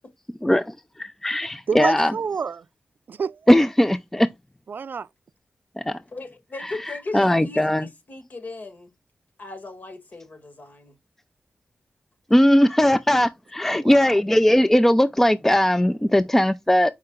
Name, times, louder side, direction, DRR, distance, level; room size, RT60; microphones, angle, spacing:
voice 1, 0.4-2.1 3.5-4.3 5.8-6.0 6.6-6.7 7.1-7.9 12.3-16.9, left 1 dB, 10° left, 0.4 m, -19 dB
voice 2, 1.7-2.6 3.1-3.4 4.7-5.1 13.7-14.1, right 6 dB, 65° right, 0.3 m, -28 dB
voice 3, 6.1-8.9 9.4-10.9, left 3 dB, 50° left, 1.7 m, -38 dB
5.5 x 4.8 x 3.7 m
wide cardioid pair, 85°, 4 cm